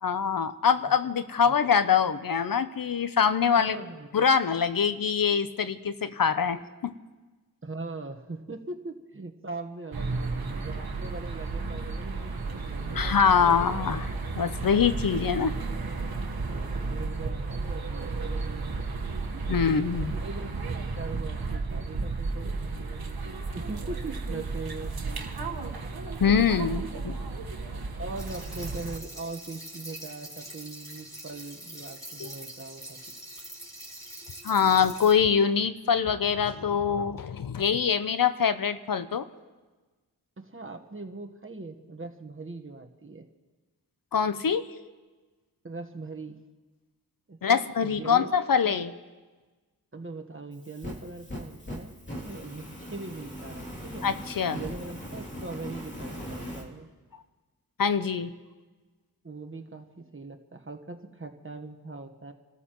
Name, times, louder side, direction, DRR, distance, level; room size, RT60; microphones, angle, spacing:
voice 1, 0.0-3.8 4.1-6.9 12.9-14.1 14.4-15.5 19.5-20.1 26.2-26.8 32.2-32.3 34.4-39.2 44.1-44.7 47.4-48.9 54.0-54.6 57.8-58.3, left 7 dB, 60° left, 12 dB, 0.7 m, -24 dB
voice 2, 3.6-4.1 7.6-13.9 16.5-18.8 19.3-19.6 20.0-25.2 26.2-26.3 26.8-27.0 27.9-33.1 40.4-43.3 45.6-46.4 47.3-48.3 48.6-48.8 49.9-54.1 54.5-56.9 59.2-62.3, right 3 dB, 30° right, 5 dB, 1.3 m, -41 dB
sound 1, 9.9-29.0, right 3 dB, 65° right, 1.3 m, -33 dB
sound 2, 28.2-35.1, right 1 dB, 10° left, 4.2 m, -44 dB
Fire, 50.5-56.6, equal, 30° left, 2.8 m, -40 dB
27.5 x 13.5 x 3.0 m, 1.3 s
cardioid pair, 50°, 39 cm